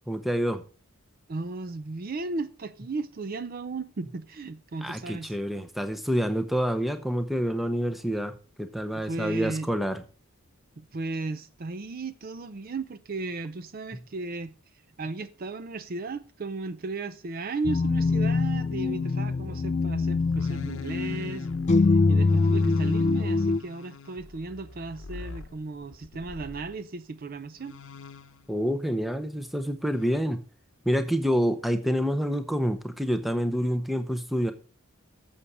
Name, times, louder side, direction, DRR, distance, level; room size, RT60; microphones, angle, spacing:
voice 1, 0.1-0.6 4.8-10.0 28.5-30.4 30.9-34.5, equal, ahead, 0.7 m, -27 dB
voice 2, 1.3-5.3 8.9-9.7 10.8-14.5 15.0-21.5 22.1-27.8, right 3 dB, 45° right, 0.5 m, -35 dB
sound 1, 17.6-23.6, left 3 dB, 30° left, 0.4 m, -24 dB
sound 2, 20.0-26.8 27.6-28.6 29.9-30.1, left 4 dB, 65° left, 0.8 m, -45 dB
8.3 x 7.2 x 4.8 m
head